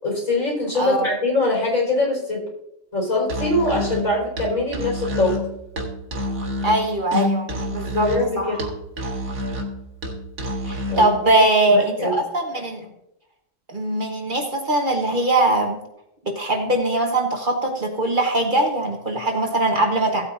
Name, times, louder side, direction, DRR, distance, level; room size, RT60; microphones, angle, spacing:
voice 1, 0.0-2.4 2.9-5.4 7.8-8.6 10.9-12.2, left 2 dB, 80° left, -4 dB, 5.3 m, -23 dB
voice 2, 0.7-1.1 6.6-8.1 8.4-8.7 10.6-12.9 13.7-15.8 16.2-20.3, right 2 dB, 40° right, 2 dB, 1.3 m, -21 dB
Musical instrument, 3.2-11.2, left 1 dB, 80° right, 2.0 m, -28 dB
16.5 x 8.6 x 2.6 m, 0.82 s
omnidirectional pair, 1.4 m